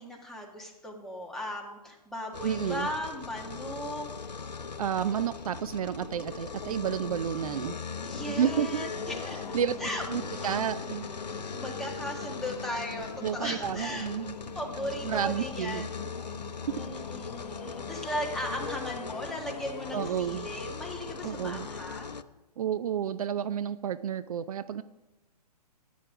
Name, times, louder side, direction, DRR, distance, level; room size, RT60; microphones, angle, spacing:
voice 1, 0.0-4.1 8.0-9.4 9.8-10.6 11.5-14.1 14.5-16.1 16.7-22.2, equal, ahead, -1 dB, 1.9 m, -37 dB
sound 1, 2.3-22.2, left 5 dB, 90° left, 0.7 m, -39 dB
voice 2, 2.4-2.9 4.8-7.8 8.4-8.9 9.5-9.7 10.1-11.1 13.2-14.4 15.0-15.9 19.9-20.5 21.2-21.7 22.6-24.8, right 9 dB, 60° right, 13 dB, 0.5 m, -31 dB
sound 2, 6.6-19.5, left 4 dB, 60° left, 1.4 m, -46 dB
14.5 x 9.3 x 5.0 m, 1.0 s
hypercardioid pair, 125°, 21 cm